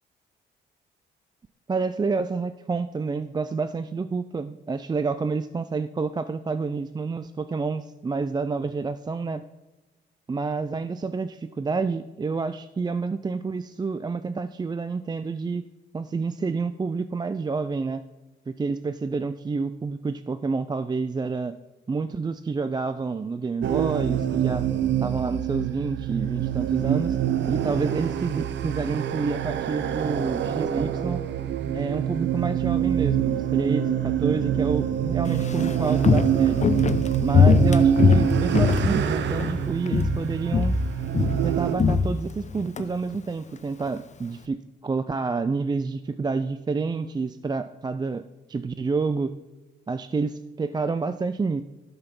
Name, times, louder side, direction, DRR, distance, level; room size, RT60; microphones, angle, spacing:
voice 1, 1.7-9.4 10.3-15.6 15.9-18.0 18.5-21.6 21.9-24.7 25.0-27.2 27.5-31.2 31.7-36.6 37.2-40.8 41.4-49.3 49.9-51.6, right 4 dB, 20° right, 11 dB, 0.4 m, -28 dB
sound 1, 23.6-41.8, right 9 dB, 65° right, 0.8 m, -25 dB
Walk footsteps, 35.3-39.6 39.9-40.2 40.5-42.8 43.1-43.2, left 5 dB, 35° left, 0.8 m, -21 dB
12.0 x 5.5 x 6.0 m, 1.1 s
cardioid pair, 90°, 20 cm